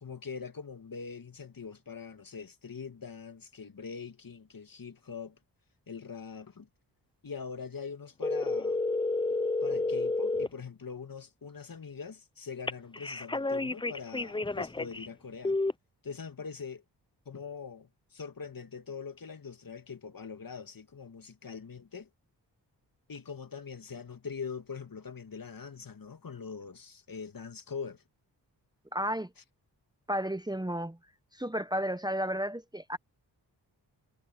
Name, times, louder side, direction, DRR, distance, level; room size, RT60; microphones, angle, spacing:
voice 1, 0.0-5.4 5.9-6.7 7.2-8.8 9.6-15.6 16.0-16.8 17.3-22.1 23.1-28.0, left 5 dB, 50° left, 2.2 m, -43 dB
sound 1, 8.2-10.5 12.7-15.1 15.4-15.7, left 3 dB, 10° left, 0.6 m, -30 dB
voice 2, 28.9-29.3 30.1-31.0 31.3-33.0, equal, 10° right, 1.2 m, -32 dB
cardioid pair, 45°, 43 cm